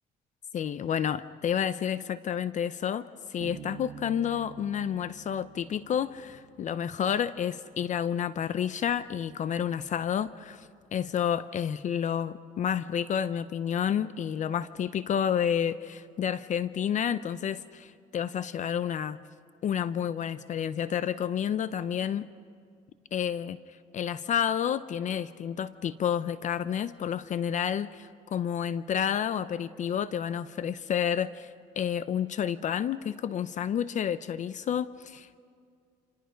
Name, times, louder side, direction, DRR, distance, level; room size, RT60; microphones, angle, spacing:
voice 1, 0.5-19.2 19.6-22.3 23.1-23.6 23.9-31.5 31.8-35.4, left 8 dB, 45° left, 14 dB, 0.6 m, -30 dB
Bass guitar, 3.4-7.0, right 10 dB, 60° right, 2.2 m, -47 dB
28.0 x 26.5 x 5.1 m, 2.3 s
cardioid pair, 110°, 17 cm